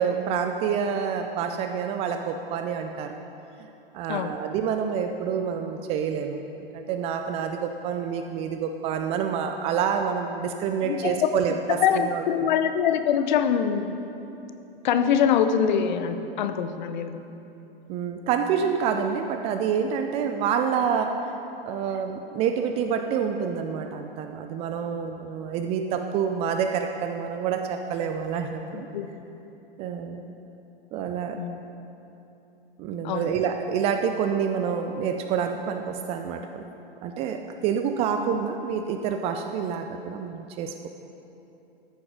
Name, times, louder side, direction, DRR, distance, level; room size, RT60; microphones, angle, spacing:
voice 1, 0.0-3.2 3.9-6.4 6.7-12.5 17.9-21.2 21.6-28.9 29.8-30.2 30.9-31.4 32.8-36.6 37.0-40.9, right 7 dB, 20° right, 6 dB, 0.4 m, -27 dB
voice 2, 10.8-11.3 11.7-14.0 14.8-17.2 28.7-29.4 31.3-31.6 33.0-33.3, left 8 dB, 50° left, 9 dB, 0.8 m, -24 dB
13.5 x 6.9 x 5.0 m, 2.9 s
figure-of-eight pair, 110°, 30 cm